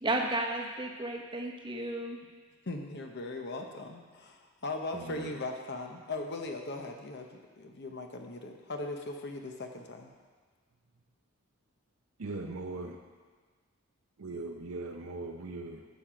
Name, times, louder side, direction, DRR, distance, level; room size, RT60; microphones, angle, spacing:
voice 1, 0.0-2.2, right 2 dB, 20° right, 1 dB, 0.9 m, -33 dB
voice 2, 2.7-7.3 7.6-10.1, left 2 dB, 50° left, 3 dB, 0.8 m, -39 dB
voice 3, 4.9-5.4 12.2-13.0 14.2-15.9, right 2 dB, 75° right, 3 dB, 0.7 m, -40 dB
11.0 x 7.4 x 5.0 m, 1.5 s
head